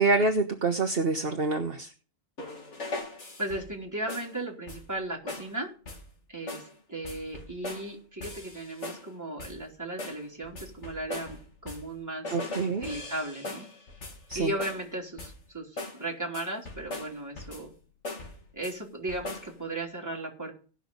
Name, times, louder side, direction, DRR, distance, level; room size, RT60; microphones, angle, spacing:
voice 1, 0.0-1.9 12.3-12.9 14.3-14.5, right 3 dB, 50° right, 5 dB, 1.3 m, -26 dB
sound 1, 2.4-3.8 4.1-4.4 4.7-5.0 5.3-5.5 5.9-6.1 6.5-6.7 7.0-7.9 8.2-9.1 9.4-9.7 10.0-12.0 12.2-14.9 15.2-15.5 15.8-16.0 16.3-17.7 18.0-18.8 19.1-19.5, left 2 dB, 60° left, 2.7 m, -40 dB
voice 2, 3.4-5.7 6.3-12.4 12.8-13.7 14.3-17.7 18.5-20.5, right 2 dB, 15° right, -1 dB, 3.2 m, -36 dB
17.5 x 6.2 x 5.3 m, 0.38 s
omnidirectional pair, 1.3 m